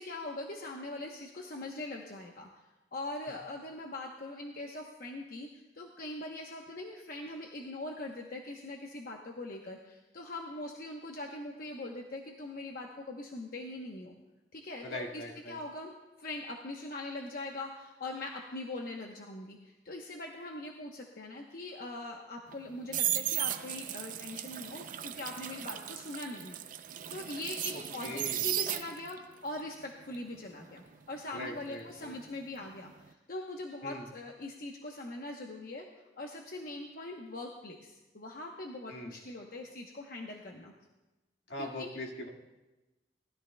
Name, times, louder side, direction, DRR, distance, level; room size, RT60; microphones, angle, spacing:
voice 1, 0.0-2.5 2.9-14.1 14.5-15.9 16.2-26.6 26.9-35.9 36.2-40.7 41.6-41.9, left 2 dB, 55° left, 1 dB, 0.9 m, -42 dB
voice 2, 14.8-15.6 27.7-28.4 31.3-32.1 33.8-34.1 38.9-39.1 41.5-42.3, left 1 dB, 75° left, 0 dB, 1.8 m, -41 dB
sound 1, 22.5-29.2 29.6-32.5 32.7-33.1, right 12 dB, 50° right, 0.5 m, -36 dB
19.5 x 12.5 x 2.2 m, 1.1 s
head